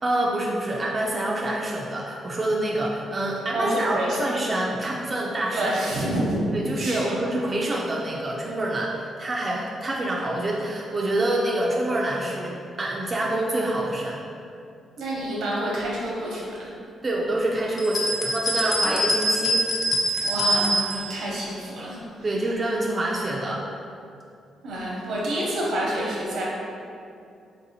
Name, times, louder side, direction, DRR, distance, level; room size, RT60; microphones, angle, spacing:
voice 1, 0.0-5.7 6.5-14.2 17.0-19.6 22.2-23.6, right 1 dB, 30° right, -3 dB, 0.3 m, -26 dB
voice 2, 3.5-4.2 5.5-6.4 6.8-7.1 15.0-16.7 18.8-18.9 20.2-22.0 24.6-26.4, right 1 dB, 80° right, -5 dB, 0.8 m, -28 dB
sound 1, 17.8-21.1, equal, 35° left, 0.4 m, -24 dB
3.2 x 2.6 x 2.8 m, 2.5 s
cardioid pair, 100°, 0 cm